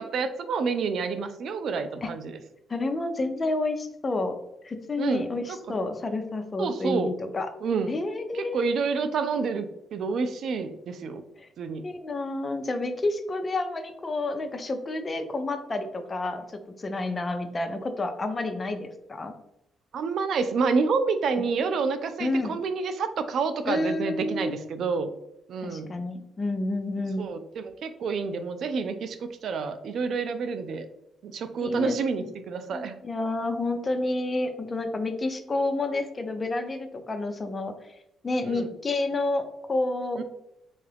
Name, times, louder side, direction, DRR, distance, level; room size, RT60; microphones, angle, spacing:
voice 1, 0.0-2.3 5.0-5.6 6.6-7.1 7.6-8.0 8.3-11.2 11.6-11.8 19.9-25.1 25.5-25.9 27.2-30.9 31.2-32.9 38.5-38.7 40.2-40.3, right 5 dB, 65° right, 10 dB, 0.3 m, -28 dB
voice 2, 2.7-4.4 4.6-7.5 7.9-8.8 11.4-11.5 11.8-19.3 21.4-21.5 22.2-22.5 23.7-24.6 25.6-27.3 31.6-32.3 32.7-37.9 38.2-40.2, left 2 dB, 30° left, 7 dB, 0.4 m, -30 dB
3.6 x 2.3 x 3.3 m, 0.84 s
cardioid pair, 90°, 0 cm